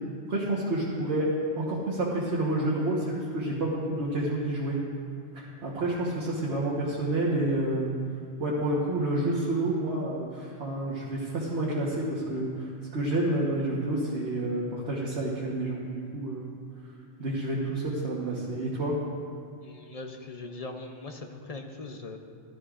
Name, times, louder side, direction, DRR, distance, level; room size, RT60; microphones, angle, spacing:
voice 1, 0.3-1.3 1.5-4.8 5.3-7.9 8.4-16.5 17.2-19.0, right 1 dB, 70° right, -5 dB, 1.6 m, -29 dB
voice 2, 19.6-22.2, left 3 dB, 40° left, 4 dB, 0.6 m, -40 dB
14.5 x 12.0 x 2.5 m, 2.3 s
omnidirectional pair, 1.2 m